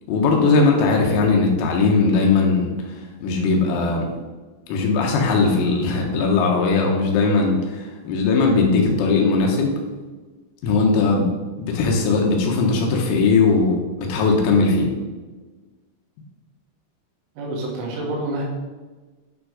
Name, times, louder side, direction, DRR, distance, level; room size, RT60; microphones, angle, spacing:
voice 1, 0.1-2.7 3.2-4.1 4.7-9.8 10.6-14.9, left 3 dB, 85° left, 0 dB, 4.0 m, -19 dB
voice 2, 17.4-18.5, right 1 dB, 85° right, -2 dB, 5.0 m, -27 dB
10.5 x 6.4 x 4.9 m, 1.3 s
omnidirectional pair, 6.0 m